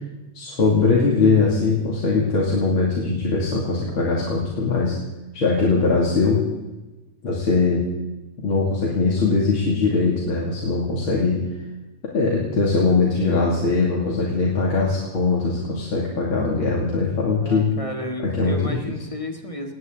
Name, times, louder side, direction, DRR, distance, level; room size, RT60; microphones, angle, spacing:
voice 1, 0.4-5.0 5.3-6.4 7.2-7.9 8.4-11.5 12.1-17.7 18.2-18.8, left 4 dB, 45° left, -3 dB, 3.4 m, -21 dB
voice 2, 17.4-19.7, left 1 dB, 20° left, 3 dB, 1.0 m, -32 dB
19.5 x 18.5 x 4.0 m, 1.1 s
omnidirectional pair, 3.4 m